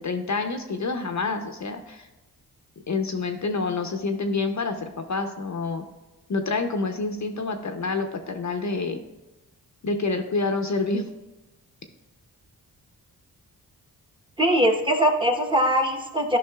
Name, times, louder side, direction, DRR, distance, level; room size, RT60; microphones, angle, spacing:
voice 1, 0.0-2.1 2.9-5.8 6.3-9.0 9.8-11.0, left 3 dB, 45° left, 6 dB, 0.7 m, -27 dB
voice 2, 14.4-16.4, equal, 10° right, 3 dB, 1.0 m, -21 dB
11.5 x 5.3 x 2.3 m, 1.1 s
cardioid pair, 60°, 40 cm